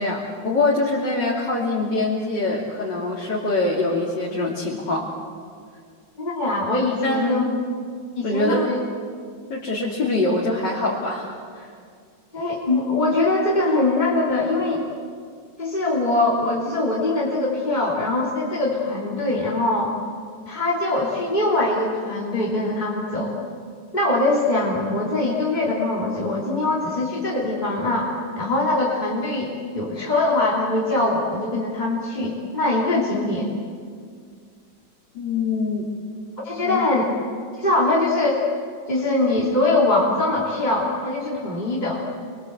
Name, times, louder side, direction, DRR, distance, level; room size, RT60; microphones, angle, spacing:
voice 1, 0.0-5.1 7.0-7.6 8.2-8.8 9.5-11.7 35.1-35.9 36.6-36.9, left 2 dB, 75° left, -5 dB, 3.5 m, -24 dB
voice 2, 6.2-7.4 8.2-8.8 12.3-14.8 15.6-19.9 20.5-23.4 23.9-33.5 36.4-37.0 37.6-38.4 38.9-42.0, left 2 dB, 25° left, -5 dB, 3.3 m, -22 dB
29.0 x 23.0 x 8.1 m, 2.1 s
omnidirectional pair, 1.9 m